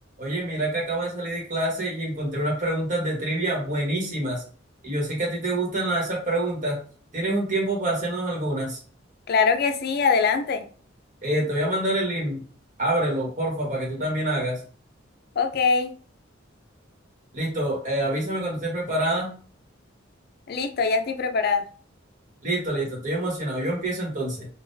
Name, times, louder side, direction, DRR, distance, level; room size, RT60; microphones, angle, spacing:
voice 1, 0.2-4.4 4.8-6.8 7.1-8.8 11.2-12.4 12.8-14.6 17.3-19.3 22.4-24.5, right 1 dB, 40° right, -3 dB, 1.2 m, -26 dB
voice 2, 9.3-10.6 15.4-15.9 20.5-21.6, left 5 dB, 55° left, 6 dB, 0.4 m, -22 dB
3.7 x 2.3 x 2.6 m, 0.41 s
head